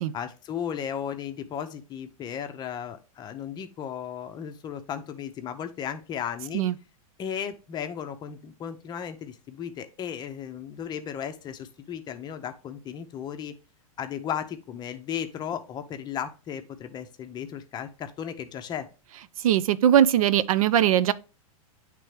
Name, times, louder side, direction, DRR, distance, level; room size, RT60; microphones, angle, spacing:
voice 1, 0.1-6.7 7.2-13.6 14.0-18.9, left 8 dB, 25° left, 0.6 m, -35 dB
voice 2, 19.4-21.1, right 10 dB, 75° right, 0.5 m, -20 dB
8.9 x 3.4 x 3.3 m
hypercardioid pair, 135°, 18 cm